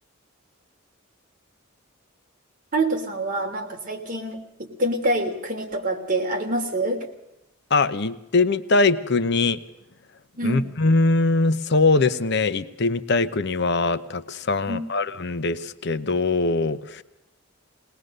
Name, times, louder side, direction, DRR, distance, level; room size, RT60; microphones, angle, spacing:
voice 1, 2.7-7.1 10.4-10.7 14.7-14.8, right 1 dB, 40° right, 2 dB, 3.1 m, -26 dB
voice 2, 7.7-9.6 10.4-17.0, left 3 dB, 55° left, 12 dB, 0.8 m, -22 dB
21.0 x 19.5 x 6.6 m, 0.90 s
head